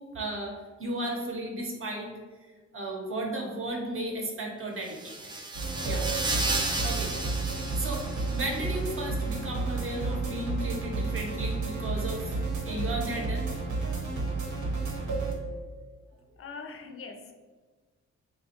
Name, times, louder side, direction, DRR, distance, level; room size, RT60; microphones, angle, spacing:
voice 1, 0.0-2.1 2.5-5.4 5.8-6.1 6.8-7.2 7.7-12.4 12.6-13.5, right 1 dB, 45° right, 0 dB, 0.7 m, -35 dB
sound 1, 4.9-8.7, right 2 dB, 15° right, 0.3 m, -33 dB
sound 2, 5.5-15.3, right 3 dB, 75° right, 0.9 m, -31 dB
voice 2, 16.4-17.3, left 4 dB, 50° left, 4 dB, 0.4 m, -42 dB
2.9 x 2.3 x 4.2 m, 1.4 s
wide cardioid pair, 115°, 29 cm